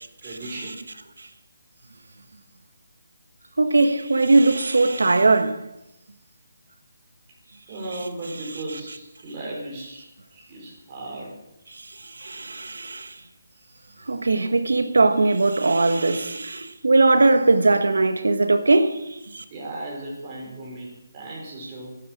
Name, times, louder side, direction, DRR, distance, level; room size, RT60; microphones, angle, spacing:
voice 1, 0.2-0.8 7.7-10.1 10.3-11.3 19.5-22.0, right 2 dB, 20° right, 5.3 m, -36 dB
voice 2, 3.6-5.7 12.0-13.1 14.1-19.4, right 3 dB, 85° right, 1.4 m, -20 dB
11.5 x 10.5 x 6.0 m
hypercardioid pair, 170°, 0 cm